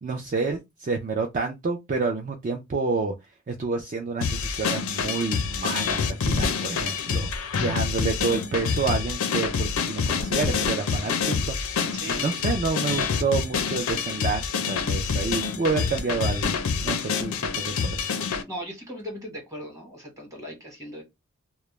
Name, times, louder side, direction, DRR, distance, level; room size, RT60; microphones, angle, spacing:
voice 1, 0.0-3.1 3.5-7.3 7.6-16.6 16.8-18.0, right 4 dB, 35° right, 0.3 m, -29 dB
sound 1, 4.2-18.4, left 5 dB, 75° left, 0.4 m, -27 dB
voice 2, 11.9-12.4 18.2-21.0, equal, 15° right, 1.0 m, -38 dB
2.2 x 2.0 x 3.0 m
head